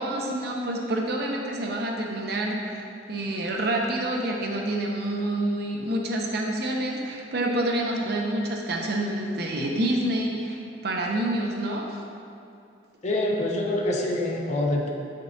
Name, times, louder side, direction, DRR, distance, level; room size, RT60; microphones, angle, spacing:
voice 1, 0.0-11.9, right 1 dB, 65° right, 0 dB, 0.7 m, -28 dB
voice 2, 13.0-14.9, left 1 dB, 40° left, -1 dB, 0.7 m, -25 dB
7.6 x 5.2 x 2.7 m, 2.6 s
head